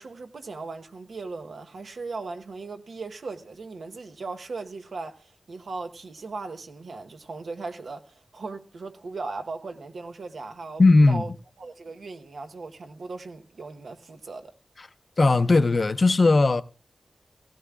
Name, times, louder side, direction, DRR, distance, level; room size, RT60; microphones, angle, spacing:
voice 1, 0.0-10.8 11.1-11.3 11.6-14.5, right 3 dB, 90° right, 1.0 m, -38 dB
voice 2, 10.8-11.3 14.8-14.9 15.2-16.6, left 3 dB, 50° left, 0.6 m, -18 dB
17.0 x 16.0 x 2.4 m
wide cardioid pair, 100°, 0 cm